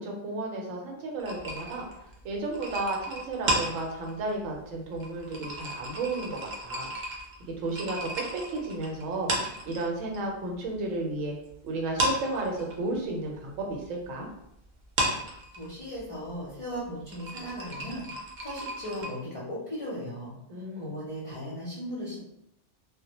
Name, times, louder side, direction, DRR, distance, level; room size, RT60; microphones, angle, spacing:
voice 1, 0.0-1.8 2.2-6.9 7.6-11.3 11.6-14.3 20.5-20.9, right 2 dB, 85° right, 0 dB, 1.0 m, -33 dB
sound 1, 1.2-10.2 10.5-11.5 11.8-19.1, right 1 dB, 60° right, 0.5 m, -34 dB
voice 2, 15.6-18.1 18.4-22.2, equal, 45° left, -8 dB, 0.4 m, -37 dB
2.1 x 2.0 x 2.8 m, 0.78 s
omnidirectional pair, 1.3 m